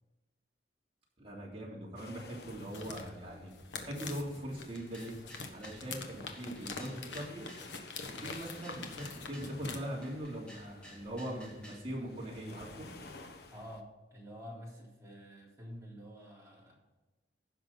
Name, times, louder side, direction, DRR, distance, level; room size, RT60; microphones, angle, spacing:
voice 1, 1.2-3.5 3.8-5.1 5.5-7.5 8.1-12.9, equal, 35° right, -4 dB, 3.1 m, -41 dB
sound 1, 2.0-13.8, left 2 dB, 60° left, 0.9 m, -54 dB
sound 2, 2.5-9.8, left 4 dB, 85° left, 1.3 m, -45 dB
sound 3, 4.7-5.9 6.3-7.7 8.2-9.5 10.0-11.9, equal, 5° left, 2.3 m, -54 dB
voice 2, 13.5-16.7, equal, 15° right, -5 dB, 3.5 m, -49 dB
15.5 x 6.3 x 4.0 m, 1.1 s
head